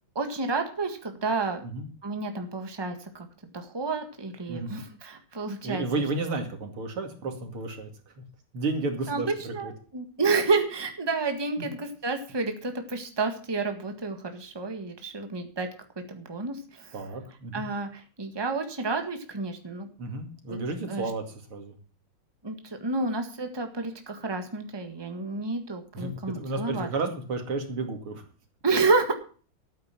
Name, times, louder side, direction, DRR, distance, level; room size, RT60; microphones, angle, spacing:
voice 1, 0.1-1.6 2.0-3.3 3.5-5.8 6.3-6.4 9.1-9.2 9.5-15.7 16.1-17.0 17.5-19.9 20.5-20.6 20.9-21.1 22.4-26.9 28.6-29.1, right 3 dB, 15° right, 6 dB, 1.6 m, -30 dB
voice 2, 5.6-7.9 8.2-8.3 8.5-9.7 16.9-17.6 20.0-21.7 25.9-28.2, right 3 dB, 90° right, 5 dB, 3.3 m, -32 dB
12.0 x 9.4 x 5.9 m, 0.40 s
omnidirectional pair, 2.3 m